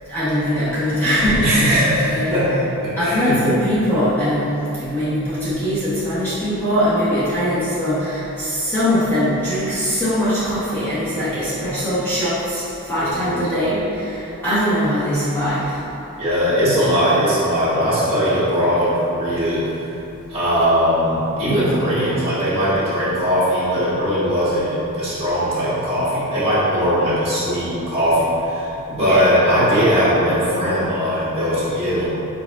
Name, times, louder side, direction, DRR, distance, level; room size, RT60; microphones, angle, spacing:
voice 1, 0.0-1.8 2.1-2.3 3.0-15.8 29.0-29.2, equal, 10° left, -13 dB, 0.9 m, -21 dB
voice 2, 1.4-2.6 2.8-3.3 11.3-11.4 13.0-13.4 16.2-19.9 20.3-32.1, equal, 25° right, -12 dB, 1.4 m, -19 dB
4.9 x 4.7 x 2.3 m, 3.0 s
head